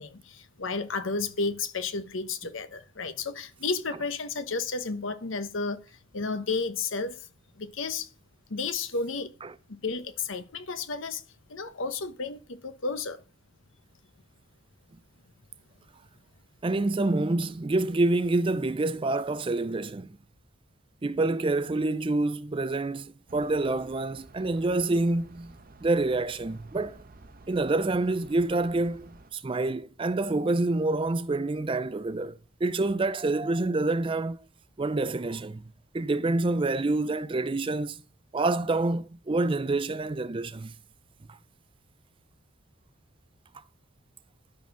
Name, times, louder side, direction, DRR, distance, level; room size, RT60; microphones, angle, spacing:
voice 1, 0.0-7.3 7.6-8.1 8.5-9.3 9.7-11.2 11.5-13.2, left 4 dB, 70° left, 1.0 m, -32 dB
voice 2, 16.6-20.2 21.0-25.5 25.8-27.0 27.5-34.4 34.8-35.6 35.9-38.0 38.3-40.7, right 2 dB, 25° right, 0.4 m, -27 dB
sound 1, 23.3-29.3, right 2 dB, 45° right, 0.9 m, -52 dB
12.5 x 4.3 x 6.0 m
head